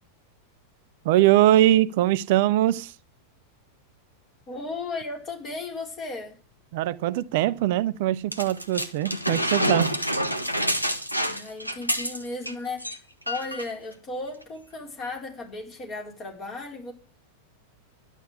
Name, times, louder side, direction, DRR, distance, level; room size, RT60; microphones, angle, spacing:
voice 1, 1.0-2.9 6.7-10.0, right 14 dB, 50° right, 0.6 m, -22 dB
voice 2, 4.5-6.3 11.3-13.0 13.3-16.9, left 3 dB, 30° left, 4.4 m, -35 dB
sound 1, 8.3-12.5 12.8-13.0 13.3-13.7 14.4-14.5, equal, 90° left, 1.3 m, -27 dB
11.5 x 8.2 x 9.7 m
figure-of-eight pair, 90°, 0 cm